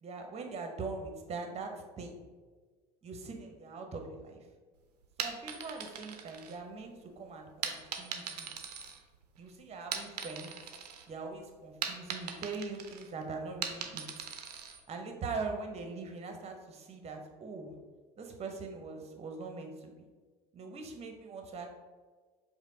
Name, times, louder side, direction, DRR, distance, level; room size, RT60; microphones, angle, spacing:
voice 1, 0.0-2.2 3.0-4.5 5.2-8.5 9.4-10.5 11.1-14.0 14.9-17.7 18.2-19.9 20.5-21.7, right 4 dB, 30° right, 4 dB, 0.8 m, -42 dB
sound 1, 5.0-7.0 7.6-9.4 9.8-11.1 11.4-14.8, right 7 dB, 80° right, 0.5 m, -40 dB
5.0 x 2.1 x 4.2 m, 1.4 s
figure-of-eight pair, 65°, 20 cm